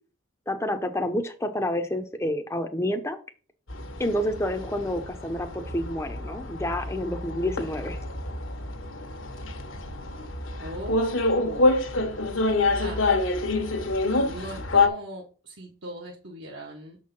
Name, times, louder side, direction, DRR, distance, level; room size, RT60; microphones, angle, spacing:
voice 1, 0.5-3.2 4.0-8.0, left 1 dB, 15° left, 5 dB, 0.7 m, -29 dB
sound 1, 3.7-14.9, left 2 dB, 70° left, 1.2 m, -27 dB
voice 2, 10.6-11.8 12.7-13.0 14.3-17.0, right 1 dB, 65° right, -1 dB, 1.2 m, -40 dB
6.7 x 4.6 x 5.9 m, 0.37 s
head